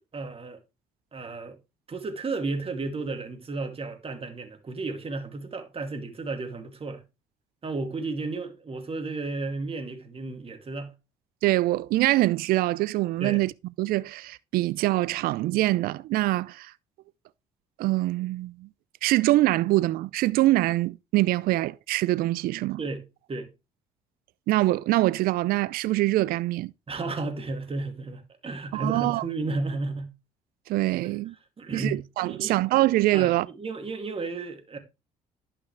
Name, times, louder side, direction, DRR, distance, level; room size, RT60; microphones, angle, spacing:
voice 1, 0.1-0.6 1.1-1.6 1.9-7.0 7.6-10.9 13.2-13.4 22.8-23.0 23.3-23.5 26.9-30.1 31.6-32.5 33.1-34.8, right 3 dB, 35° right, 2.5 m, -33 dB
voice 2, 11.4-13.5 13.8-16.7 17.8-18.7 19.0-22.8 24.5-26.7 28.7-29.2 30.7-31.3 31.7-33.5, right 17 dB, 70° right, 0.4 m, -24 dB
11.0 x 5.8 x 3.3 m
supercardioid pair, 65°, 16 cm